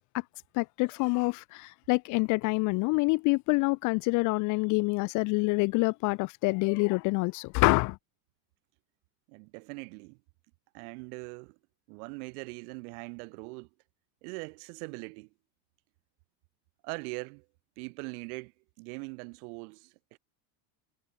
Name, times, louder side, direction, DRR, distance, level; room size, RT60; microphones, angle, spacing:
voice 1, 0.6-8.0, left 26 dB, 40° left, 0.6 m, -26 dB
voice 2, 9.3-10.2 10.7-11.6 11.9-13.7 14.2-15.3 16.8-17.4 17.8-18.5 18.8-20.2, right 33 dB, 65° right, 7.5 m, -41 dB
cardioid pair, 160°, 48 cm